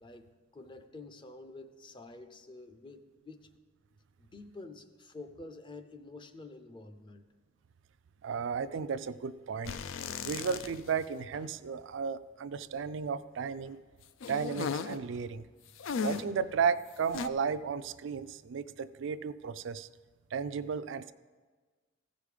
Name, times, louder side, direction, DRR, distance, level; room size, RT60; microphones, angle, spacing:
voice 1, 0.0-3.5 4.2-7.3, left 2 dB, 25° left, 7 dB, 0.5 m, -49 dB
voice 2, 8.2-9.8 10.2-13.8 14.3-15.5 16.0-19.9 20.3-21.1, right 6 dB, 65° right, 14 dB, 0.4 m, -34 dB
sound 1, 9.6-11.1 11.3-11.4 14.2-15.0 15.8-16.4 17.1-17.3, left 5 dB, 75° left, 0.4 m, -36 dB
15.0 x 5.1 x 4.9 m, 1.4 s
head